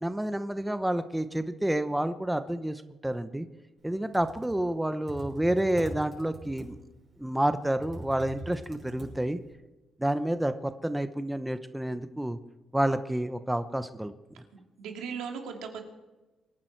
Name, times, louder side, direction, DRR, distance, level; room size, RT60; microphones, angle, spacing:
voice 1, 0.0-3.5 3.8-6.8 7.2-9.4 10.0-12.4 12.7-14.1, right 1 dB, 5° right, 10 dB, 0.8 m, -29 dB
Computer keyboard, 3.9-9.5, right 1 dB, 40° right, 6.0 m, -44 dB
voice 2, 14.5-15.8, right 6 dB, 85° right, 3 dB, 2.5 m, -38 dB
24.5 x 10.5 x 4.6 m, 1.1 s
cardioid pair, 90°, 0 cm